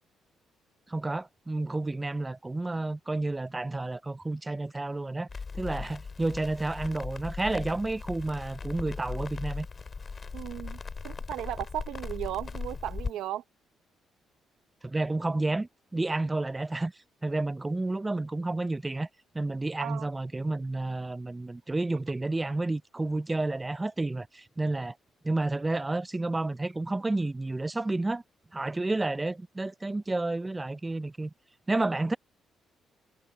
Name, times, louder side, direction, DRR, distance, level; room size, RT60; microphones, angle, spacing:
voice 1, 0.9-5.3 5.5-9.7 14.8-16.9 17.2-19.1 19.3-25.0 25.2-28.2 28.5-31.3 31.7-32.2, right 2 dB, 15° right, 0.4 m, -30 dB
Crackle, 5.3-13.1, left 4 dB, 35° left, 4.3 m, -38 dB
voice 2, 10.3-10.8 11.0-13.4 19.8-20.1, right 12 dB, 85° right, 1.2 m, -35 dB
cardioid pair, 90°, 0 cm